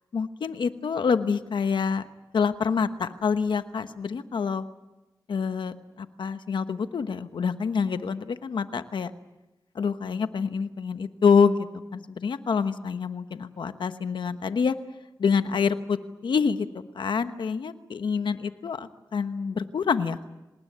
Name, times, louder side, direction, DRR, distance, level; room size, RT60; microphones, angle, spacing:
voice 1, 0.1-2.1 2.3-4.6 5.3-9.1 9.7-11.7 11.9-14.7 15.2-16.7 16.9-20.3, left 5 dB, 90° left, 10 dB, 1.1 m, -26 dB
26.5 x 20.0 x 9.4 m, 1.0 s
cardioid pair, 50°, 8 cm